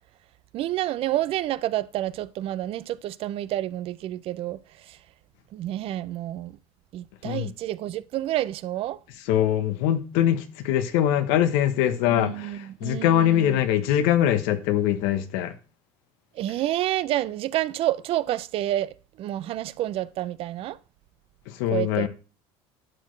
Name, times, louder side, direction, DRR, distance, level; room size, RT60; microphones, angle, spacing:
voice 1, 0.5-5.0 5.5-6.6 6.9-9.0 12.1-13.6 16.4-20.8 21.7-22.1, right 14 dB, 55° right, 0.5 m, -29 dB
voice 2, 9.3-15.5 21.5-22.1, left 11 dB, 85° left, 1.0 m, -23 dB
10.5 x 6.4 x 3.2 m
cardioid pair, 115°, 12 cm